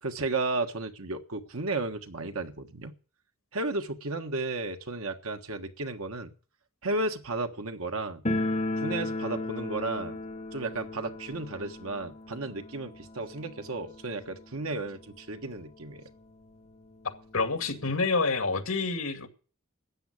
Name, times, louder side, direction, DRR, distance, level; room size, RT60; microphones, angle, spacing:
voice 1, 0.0-2.9 3.5-6.3 6.8-8.2 8.8-10.2 10.5-16.1, right 2 dB, 80° right, 1.5 m, -33 dB
sound 1, 8.2-15.0 15.2-15.3 15.6-15.7 16.4-16.5 16.8-18.0, left 2 dB, 30° left, 1.3 m, -35 dB
voice 2, 17.3-19.3, left 3 dB, 75° left, 2.3 m, -28 dB
13.0 x 8.8 x 8.4 m
head